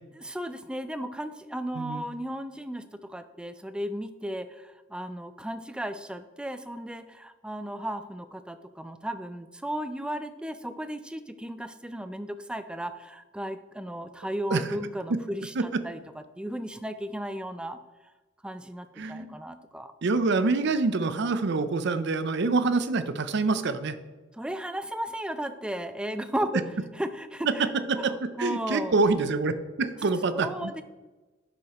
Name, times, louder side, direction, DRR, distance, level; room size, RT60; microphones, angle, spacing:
voice 1, 0.2-15.5 15.8-16.0 16.4-17.8 18.4-19.9 24.4-26.7 27.0-27.7 28.0-29.0 30.3-30.8, equal, 5° right, 10 dB, 0.4 m, -35 dB
voice 2, 19.0-19.4 20.0-24.0 27.9-30.7, right 3 dB, 60° right, 12 dB, 0.5 m, -26 dB
11.0 x 6.3 x 2.9 m, 1.2 s
head